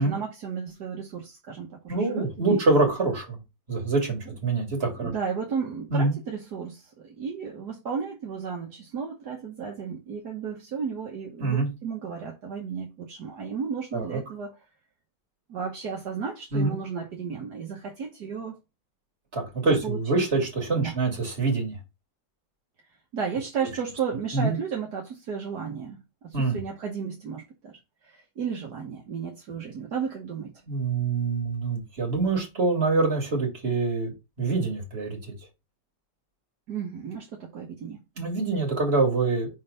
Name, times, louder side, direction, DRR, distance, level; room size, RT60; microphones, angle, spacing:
voice 1, 0.0-2.6 4.3-4.4 5.0-14.6 15.5-18.6 19.6-20.0 20.8-21.0 23.1-30.5 36.7-38.0, right 6 dB, 65° right, 1.7 m, -34 dB
voice 2, 1.9-3.4 3.7-5.1 5.9-6.1 11.4-11.7 13.9-14.2 16.5-16.8 19.3-21.8 24.3-24.5 26.3-26.6 30.7-35.3 38.2-39.5, right 3 dB, 35° right, 2.6 m, -25 dB
5.4 x 3.8 x 5.2 m
omnidirectional pair, 1.9 m